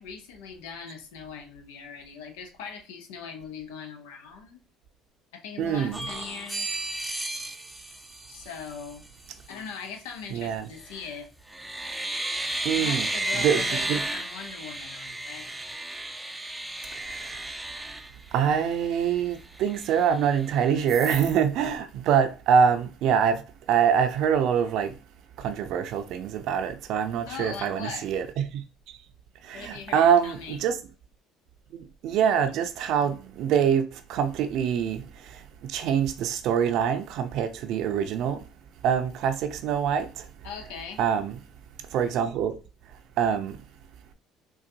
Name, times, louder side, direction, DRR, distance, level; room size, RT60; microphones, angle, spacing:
voice 1, 0.0-4.6 5.3-6.9 8.3-9.1 9.5-11.3 12.8-15.5 27.3-28.1 29.5-30.6 40.4-41.0, left 6 dB, 85° left, 0.6 m, -40 dB
voice 2, 5.6-6.1 10.3-10.7 12.6-14.0 17.0-17.4 18.3-23.4 23.7-24.9 25.4-28.6 29.4-30.8 31.7-35.0 35.6-38.4 38.8-40.2 41.0-41.4 41.9-42.6 43.2-43.6, right 8 dB, 65° right, 0.5 m, -25 dB
sound 1, 5.9-8.9 10.8-11.1 11.5-18.8 19.2-19.3 19.6-20.5 20.9-21.4, right 2 dB, 10° right, 0.4 m, -33 dB
3.8 x 2.3 x 2.6 m
supercardioid pair, 80°, 0 cm